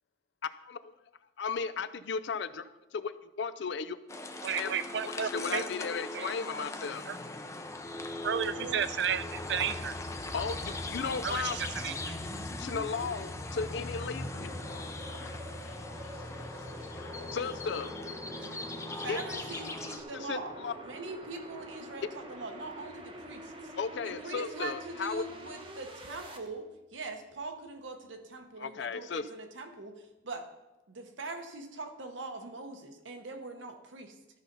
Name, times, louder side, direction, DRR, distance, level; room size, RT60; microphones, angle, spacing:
voice 1, 0.6-0.9 1.4-4.0 4.5-4.7 5.0-7.0 10.3-11.9 12.3-14.5 15.1-15.3 17.3-18.0 19.1-19.2 20.1-20.7 23.8-25.2 28.6-29.2, left 5 dB, 65° left, 0.4 m, -35 dB
sound 1, 4.1-20.0, left 2 dB, 15° left, 0.5 m, -40 dB
voice 2, 4.4-5.6 6.1-6.6 7.1-7.2 8.2-10.0 11.2-12.2, right 8 dB, 60° right, 0.4 m, -33 dB
voice 3, 8.5-8.9 18.4-18.7 18.9-20.6 20.8-23.7 24.0-30.4 30.9-34.1, right 3 dB, 80° right, 1.0 m, -42 dB
sound 2, 11.6-26.4, right 1 dB, 30° right, 0.9 m, -47 dB
sound 3, 13.5-26.6, left 2 dB, 85° left, 1.3 m, -53 dB
13.0 x 5.7 x 4.0 m
head